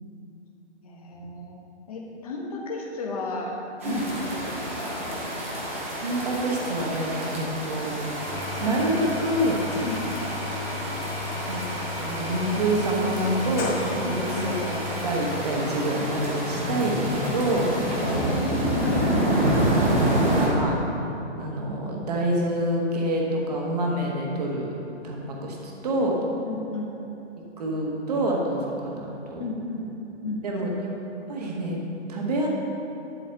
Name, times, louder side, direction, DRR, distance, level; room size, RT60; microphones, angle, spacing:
voice 1, 0.8-1.6 1.9-5.2 9.8-10.2 14.0-14.2 18.0-19.3 26.4-26.9 29.4-30.4, left 2 dB, 30° left, -1 dB, 1.3 m, -33 dB
sound 1, 3.8-20.5, right 1 dB, 10° right, 0.7 m, -28 dB
voice 2, 6.0-8.0 8.6-9.6 11.5-11.6 12.0-17.7 19.9-20.8 21.4-24.7 25.0-26.2 27.6-29.4 30.4-30.9 31.3-31.8 32.1-32.5, right 1 dB, 35° right, -1 dB, 1.5 m, -27 dB
Engine / Tools, 8.0-16.4, left 4 dB, 15° left, 1.0 m, -36 dB
Sliding door, 13.2-19.2, left 3 dB, 70° left, 1.8 m, -35 dB
11.5 x 4.9 x 7.0 m, 2.9 s
hypercardioid pair, 175°, 35 cm